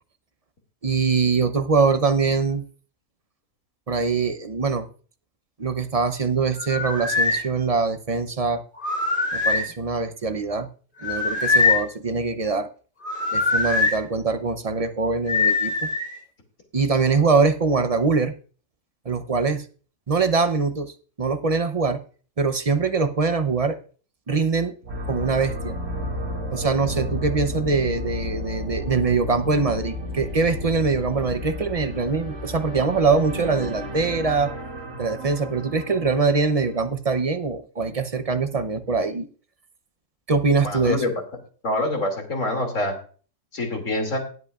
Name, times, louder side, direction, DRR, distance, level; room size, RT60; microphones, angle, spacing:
voice 1, 0.8-2.6 3.9-4.9 5.6-8.6 9.3-10.7 11.0-12.7 13.3-15.9 16.7-18.3 19.0-19.6 20.1-22.0 22.4-23.8 24.3-24.7 25.1-25.8 26.5-34.5 35.0-39.3 40.3-41.0, right 4 dB, 35° right, 9 dB, 0.7 m, -23 dB
sound 1, 6.6-7.4 8.8-9.7 11.0-11.9 13.0-14.0 15.3-16.2, left 3 dB, 40° left, 2.6 m, -22 dB
sound 2, 24.8-36.8, left 1 dB, 80° right, 2.5 m, -32 dB
voice 2, 40.6-41.1 41.6-42.9 43.5-44.2, left 2 dB, 80° left, 3 dB, 3.0 m, -25 dB
18.5 x 8.0 x 2.4 m, 0.39 s
omnidirectional pair, 1.3 m